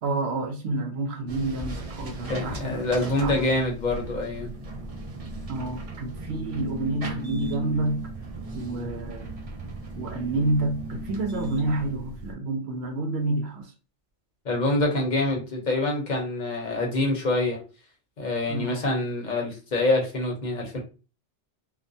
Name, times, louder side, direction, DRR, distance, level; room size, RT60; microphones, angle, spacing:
voice 1, 0.0-3.6 5.5-8.0 8.5-9.3 10.0-13.7 18.5-18.8, right 2 dB, 70° right, 0.8 m, -29 dB
elevator ride, 1.3-12.3, right 1 dB, 50° right, 0.4 m, -37 dB
voice 2, 2.3-4.5 14.4-17.6 18.2-20.8, left 2 dB, 45° left, 0.8 m, -26 dB
2.4 x 2.1 x 2.6 m
omnidirectional pair, 1.2 m